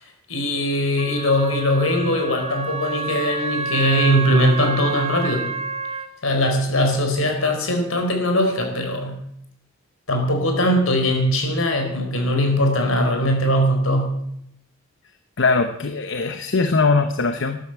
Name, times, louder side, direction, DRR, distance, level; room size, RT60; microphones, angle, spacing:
voice 1, 0.3-5.5 6.2-9.2 10.1-14.2, equal, 75° left, 3 dB, 4.6 m, -20 dB
Wind instrument woodwind instrument, 1.0-6.1, right 5 dB, 30° right, 0.9 m, -29 dB
voice 2, 15.4-17.6, left 4 dB, 60° left, 8 dB, 1.0 m, -21 dB
13.5 x 11.5 x 8.1 m, 0.72 s
head